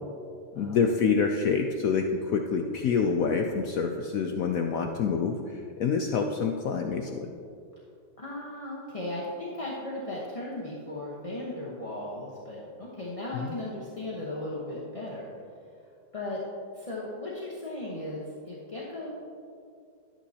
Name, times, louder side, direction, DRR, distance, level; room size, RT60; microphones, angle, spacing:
voice 1, 0.6-5.4 5.8-7.3 13.3-13.5, left 5 dB, 70° left, 3 dB, 0.8 m, -27 dB
voice 2, 8.2-15.3 16.1-16.4 16.7-19.1, left 1 dB, 25° left, -5 dB, 0.8 m, -36 dB
11.5 x 9.0 x 2.8 m, 2.4 s
omnidirectional pair, 1.9 m